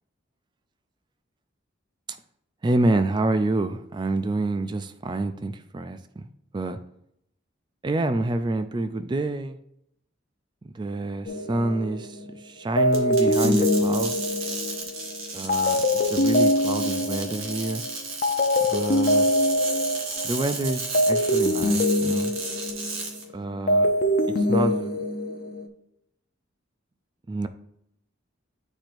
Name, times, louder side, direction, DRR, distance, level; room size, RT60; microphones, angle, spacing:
voice 1, 2.6-6.3 6.5-6.8 7.8-9.6 10.6-12.2 12.4-14.1 15.3-17.8 18.7-19.3 20.2-22.3 23.3-23.9 24.4-25.0 27.3-27.5, right 2 dB, 25° right, 10 dB, 0.3 m, -27 dB
sound 1, 11.3-12.3 12.8-17.9 18.2-23.2 23.5-25.7, left 1 dB, 45° left, 0.6 m, -24 dB
sound 2, 12.9-23.2, right 3 dB, 85° right, 1.4 m, -34 dB
9.8 x 4.4 x 2.6 m, 0.75 s
head